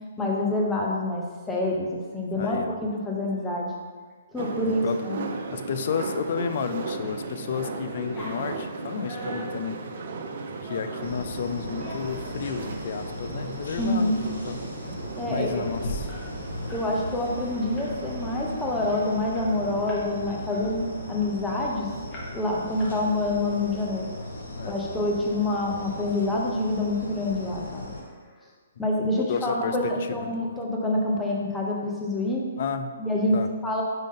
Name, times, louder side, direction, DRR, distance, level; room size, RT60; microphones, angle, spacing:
voice 1, 0.2-3.7 4.3-5.2 13.8-14.1 15.2-15.6 16.7-20.8 21.1-21.9 22.3-24.0 24.6-27.9 28.8-32.4 33.0-33.3 33.6-33.8, left 1 dB, 10° left, -3 dB, 0.9 m, -27 dB
voice 2, 2.3-2.8 4.7-5.0 5.5-9.8 10.6-14.6 15.3-16.1 24.5-24.8 29.1-30.3 32.6-32.9 33.3-33.5, left 6 dB, 55° left, 9 dB, 0.5 m, -32 dB
sound 1, 4.4-19.3, right 4 dB, 55° right, 0.6 m, -36 dB
sound 2, 6.9-7.2 7.5-11.1 11.6-12.6 13.0-13.2 13.6-13.9 14.2-14.3 14.6-16.9 17.2-17.4 17.8-18.2 18.7-18.8 19.0-20.1 20.5-21.7 22.1-22.5 22.8-23.4, left 1 dB, 25° left, 1.4 m, -43 dB
sound 3, 11.0-28.0, left 1 dB, 70° left, 1.3 m, -37 dB
5.5 x 5.0 x 3.8 m, 1.5 s
hypercardioid pair, 140°, 0 cm